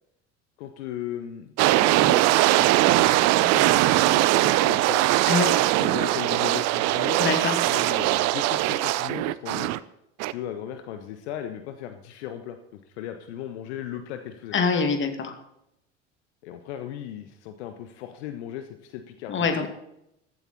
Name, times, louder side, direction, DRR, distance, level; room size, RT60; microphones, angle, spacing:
voice 1, 0.6-5.0 5.8-7.2 7.6-9.7 10.3-14.5 16.4-19.7, left 11 dB, 60° left, 8 dB, 1.3 m, -37 dB
sound 1, 1.6-9.8 10.2-10.3, right 17 dB, 45° right, 0.7 m, -21 dB
voice 2, 5.3-5.6 7.2-7.6 14.5-15.4 19.3-19.7, left 4 dB, 30° left, 7 dB, 2.3 m, -24 dB
15.5 x 14.0 x 4.2 m, 0.82 s
figure-of-eight pair, 70°, 38 cm